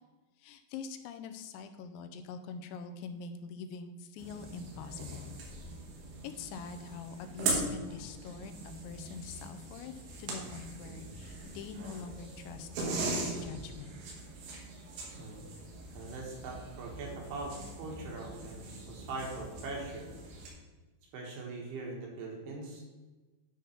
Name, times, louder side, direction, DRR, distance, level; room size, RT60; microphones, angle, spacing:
voice 1, 0.4-5.4 6.2-9.9 10.2-13.9, left 5 dB, 85° left, 7 dB, 2.9 m, -44 dB
sound 1, 4.2-20.5, right 2 dB, 85° right, 3.9 m, -40 dB
voice 2, 15.9-20.1 21.1-22.8, right 3 dB, 70° right, -1 dB, 2.9 m, -42 dB
10.0 x 3.6 x 5.7 m, 1.2 s
omnidirectional pair, 5.2 m